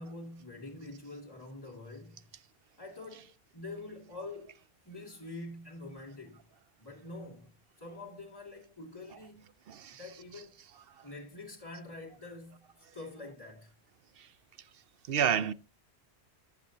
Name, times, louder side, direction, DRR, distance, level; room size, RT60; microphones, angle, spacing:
voice 1, 0.0-2.2 2.8-4.5 4.9-6.4 6.8-7.5 7.8-9.5 9.9-10.6 11.0-13.7, left 2 dB, 20° left, 2.6 m, -46 dB
voice 2, 9.7-10.0 10.9-11.1 14.2-14.3 15.1-15.5, right 8 dB, 65° right, 0.8 m, -31 dB
14.5 x 7.4 x 2.8 m
omnidirectional pair, 1.1 m